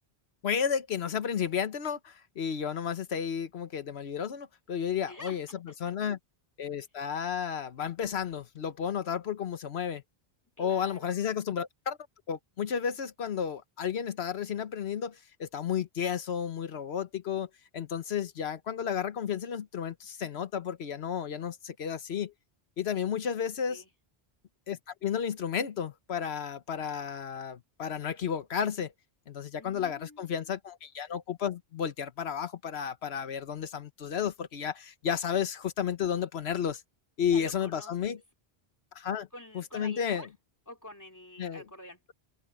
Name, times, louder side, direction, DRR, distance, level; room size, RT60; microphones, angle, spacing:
voice 1, 0.4-6.2 6.6-10.0 10.6-12.0 12.3-17.5 17.7-22.3 22.8-23.8 24.7-28.9 29.3-36.8 37.2-38.2 38.9-39.3 39.5-40.3 41.4-41.6, left 8 dB, 90° left, 1.2 m, -32 dB
voice 2, 5.0-5.7 10.6-11.3 23.7-23.9 29.6-30.5 37.2-38.1 39.3-40.3 40.7-42.0, left 1 dB, 15° left, 2.8 m, -47 dB
omnidirectional pair, 1.1 m